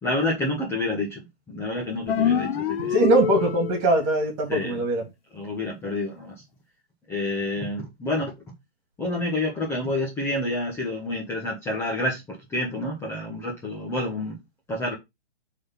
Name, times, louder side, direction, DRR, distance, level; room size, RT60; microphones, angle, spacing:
voice 1, 0.0-3.1 4.5-4.8 5.3-6.4 7.1-8.3 9.0-14.4 14.7-14.9, left 2 dB, 10° left, 1.3 m, -28 dB
sound 1, 2.1-4.0, left 8 dB, 60° left, 0.8 m, -25 dB
voice 2, 2.8-5.0, right 1 dB, 30° right, 2.9 m, -22 dB
5.0 x 4.2 x 5.8 m
hypercardioid pair, 155°, 32 cm